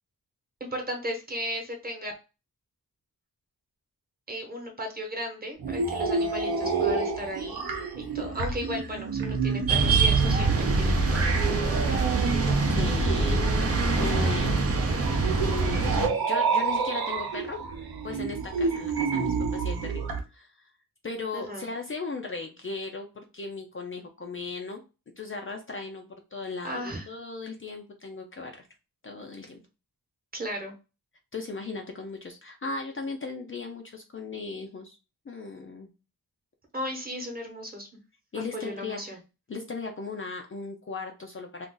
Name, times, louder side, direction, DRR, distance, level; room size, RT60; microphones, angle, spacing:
voice 1, 0.6-2.1 4.3-7.7 7.9-12.0 21.3-21.7 26.6-27.1 30.3-30.7 36.7-37.9 38.5-39.2, equal, 25° right, 2 dB, 1.0 m, -36 dB
sound 1, 5.6-20.2, right 4 dB, 80° right, 0.7 m, -30 dB
sound 2, 9.7-16.1, right 3 dB, 40° right, 0.7 m, -24 dB
voice 2, 12.7-14.6 15.4-17.6 18.0-20.0 20.3-20.6 21.0-24.8 25.2-28.7 29.0-29.6 31.3-35.0 35.3-35.9 38.3-39.2 39.5-41.7, left 3 dB, 35° left, 3 dB, 0.5 m, -37 dB
2.5 x 2.4 x 3.7 m, 0.30 s
wide cardioid pair, 90°, 36 cm